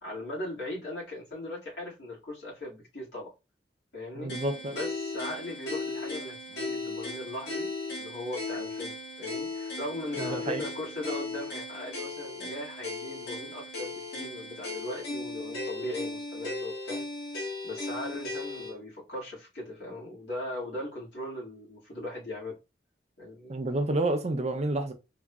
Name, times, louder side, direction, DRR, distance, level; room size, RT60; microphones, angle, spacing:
voice 1, 0.0-3.3 3.9-4.3 4.7-7.7 7.9-17.0 17.4-22.6 23.2-23.6, left 1 dB, 85° left, 2.1 m, -39 dB
voice 2, 4.2-4.7 10.2-10.6 23.5-24.9, right 2 dB, 40° right, 0.6 m, -29 dB
sound 1, 4.3-18.7, left 2 dB, 70° left, 1.6 m, -37 dB
3.9 x 2.8 x 2.3 m
head